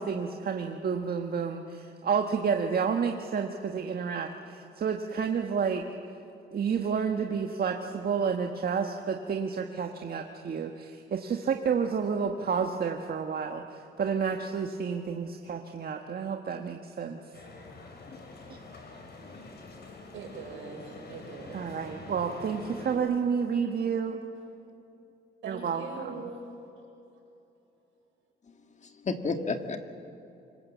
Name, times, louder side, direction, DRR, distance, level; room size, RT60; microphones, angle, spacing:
voice 1, 0.0-5.8 6.5-17.2 21.5-24.2 25.5-25.8, right 6 dB, 50° right, 4 dB, 1.5 m, -30 dB
sound 1, 17.3-23.0, left 3 dB, 55° left, 5.1 m, -46 dB
voice 2, 19.2-19.7 28.5-29.8, left 4 dB, 35° left, 6 dB, 1.9 m, -34 dB
voice 3, 19.9-21.9 25.4-26.5, right 4 dB, 80° right, 0 dB, 6.3 m, -42 dB
26.0 x 24.0 x 7.4 m, 2.9 s
cardioid pair, 90°, 20 cm